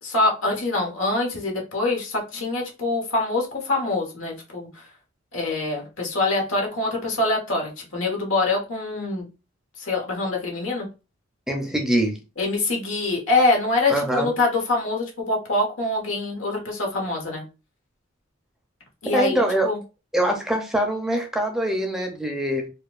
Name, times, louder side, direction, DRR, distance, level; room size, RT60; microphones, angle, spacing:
voice 1, 0.0-4.9 5.3-9.2 9.8-10.9 12.4-17.4 19.0-19.8, left 2 dB, 85° left, 1.4 m, -24 dB
voice 2, 11.5-12.2 13.9-14.3 19.1-19.7 20.1-22.7, right 1 dB, ahead, 0.6 m, -23 dB
4.3 x 2.4 x 2.4 m
head